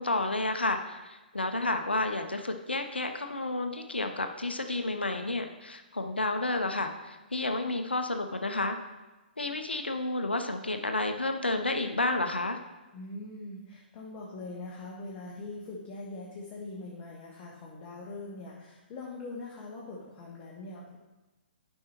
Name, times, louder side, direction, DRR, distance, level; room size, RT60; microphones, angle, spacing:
voice 1, 0.0-8.8 9.4-12.6, left 2 dB, 80° left, 6 dB, 0.7 m, -31 dB
voice 2, 12.9-21.0, left 2 dB, 30° left, -4 dB, 1.1 m, -42 dB
10.5 x 5.5 x 3.0 m, 1.1 s
figure-of-eight pair, 125°, 6 cm